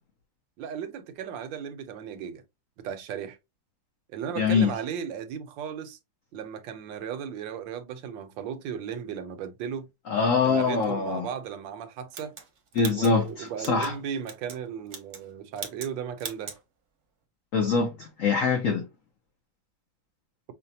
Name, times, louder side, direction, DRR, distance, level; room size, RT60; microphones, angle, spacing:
voice 1, 0.6-2.4 2.8-3.4 4.1-6.0 6.3-9.9 10.4-12.4 12.9-16.6, right 8 dB, 75° right, 1.3 m, -36 dB
voice 2, 4.4-4.7 10.1-11.3 12.7-13.9 17.5-18.9, left 5 dB, 75° left, 0.7 m, -24 dB
sound 1, 12.1-13.9 14.2-14.6 14.9-15.3 15.6-16.6, right 6 dB, 50° right, 0.9 m, -40 dB
5.7 x 2.1 x 2.7 m
omnidirectional pair, 2.1 m